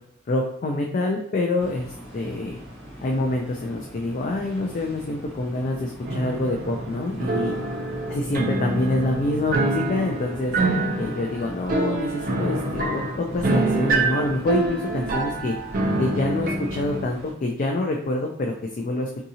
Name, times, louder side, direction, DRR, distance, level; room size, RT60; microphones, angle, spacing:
voice 1, 0.3-2.6 3.0-7.5 8.1-10.5 11.0-15.5 16.0-19.2, left 2 dB, 40° left, 1 dB, 0.3 m, -26 dB
sound 1, 1.6-17.3, equal, 15° left, 1.2 m, -42 dB
sound 2, 6.1-17.1, right 2 dB, 45° right, 0.5 m, -26 dB
3.6 x 2.7 x 2.7 m, 0.74 s
head